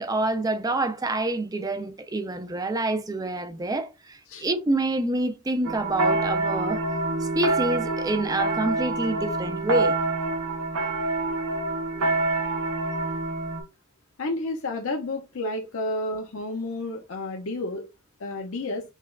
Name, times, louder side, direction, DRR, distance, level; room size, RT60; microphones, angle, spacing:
voice 1, 0.0-6.8 7.2-10.0, right 2 dB, 15° right, 0.3 m, -27 dB
sound 1, 5.7-13.6, right 2 dB, 90° right, 0.8 m, -26 dB
voice 2, 14.2-17.8 18.2-18.8, left 2 dB, 65° left, 0.6 m, -31 dB
5.6 x 2.2 x 2.3 m
head